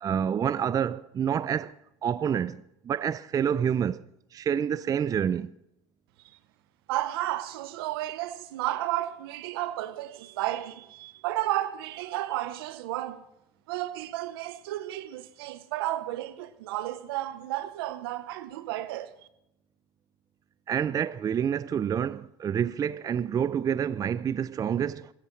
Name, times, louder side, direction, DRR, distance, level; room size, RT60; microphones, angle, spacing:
voice 1, 0.0-1.7 2.0-4.0 4.3-5.5 20.7-25.1, right 8 dB, 30° right, 0.4 m, -28 dB
voice 2, 6.9-13.3 13.7-19.1, right 14 dB, 80° right, 0.9 m, -32 dB
25.5 x 13.0 x 3.2 m
hypercardioid pair, 85°, 12 cm